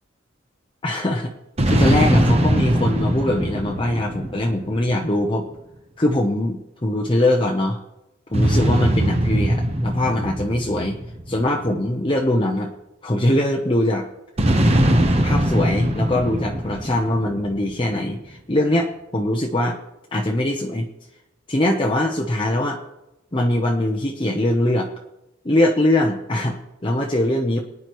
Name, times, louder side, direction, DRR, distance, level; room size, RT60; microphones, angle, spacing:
voice 1, 0.8-1.3 1.7-5.4 6.0-7.8 8.3-9.5 9.8-11.0 11.3-12.7 13.0-14.1 15.1-19.8 20.1-20.9 21.5-22.8 23.3-24.9 25.4-27.6, left 1 dB, 25° left, 0 dB, 0.8 m, -22 dB
sound 1, 1.6-5.2 8.3-12.0 14.4-17.8, right 1 dB, 30° right, 1.0 m, -21 dB
23.0 x 9.8 x 3.1 m, 0.96 s
head